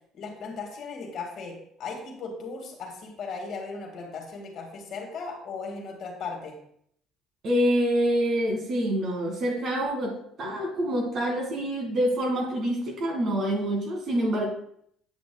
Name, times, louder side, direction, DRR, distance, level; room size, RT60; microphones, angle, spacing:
voice 1, 0.1-6.6, left 4 dB, 55° left, 1 dB, 1.9 m, -37 dB
voice 2, 7.4-14.5, equal, 55° right, 0 dB, 2.1 m, -26 dB
8.6 x 6.0 x 2.3 m, 0.69 s
supercardioid pair, 85°, 0 cm